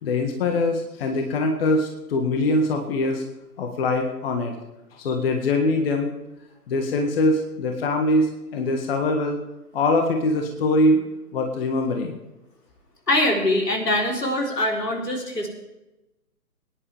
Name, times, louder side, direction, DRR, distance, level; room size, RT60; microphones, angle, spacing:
voice 1, 0.0-3.2 3.6-4.5 4.9-6.1 6.7-9.4 9.7-11.0 11.3-12.2, left 2 dB, 40° left, 3 dB, 1.7 m, -23 dB
voice 2, 13.1-15.5, left 1 dB, 85° left, 0 dB, 4.1 m, -23 dB
23.0 x 10.5 x 3.5 m, 0.96 s
figure-of-eight pair, 140°, 47 cm